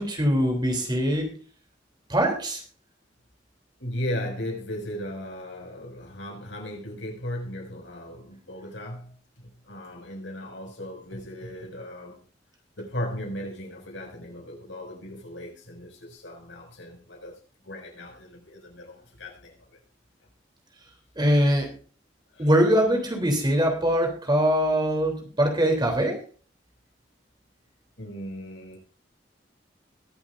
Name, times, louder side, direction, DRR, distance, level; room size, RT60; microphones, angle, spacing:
voice 1, 0.0-1.3 2.1-2.6 21.2-21.7 22.4-26.2, equal, 25° right, 3.3 m, -22 dB
voice 2, 3.8-12.2 12.8-17.4 17.6-19.8 22.3-22.5 28.0-28.8, left 1 dB, 85° left, 6.1 m, -37 dB
22.0 x 8.4 x 2.6 m
head